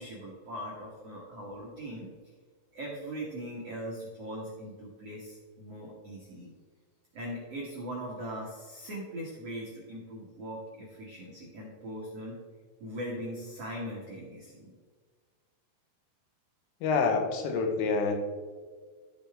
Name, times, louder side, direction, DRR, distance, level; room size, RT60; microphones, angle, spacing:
voice 1, 0.0-2.1 2.7-6.5 7.1-12.4 12.8-14.7, equal, 85° right, -4 dB, 1.3 m, -40 dB
voice 2, 16.8-18.1, left 4 dB, 80° left, 4 dB, 3.7 m, -27 dB
13.5 x 7.0 x 3.5 m, 1.5 s
omnidirectional pair, 5.6 m